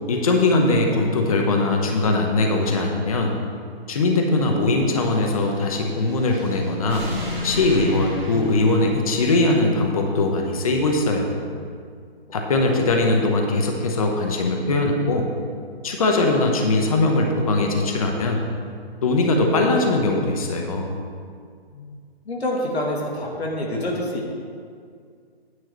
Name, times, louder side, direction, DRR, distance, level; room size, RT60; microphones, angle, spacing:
voice 1, 0.1-3.4 3.9-7.1 7.4-11.3 12.3-15.3 15.8-18.4 19.0-20.9, left 2 dB, 35° left, 2 dB, 0.9 m, -21 dB
sound 1, 5.0-9.7, left 1 dB, 5° right, 1.1 m, -34 dB
voice 2, 22.3-24.3, left 1 dB, 90° left, -2 dB, 2.5 m, -27 dB
9.4 x 4.8 x 7.2 m, 2.2 s
hypercardioid pair, 165°, 31 cm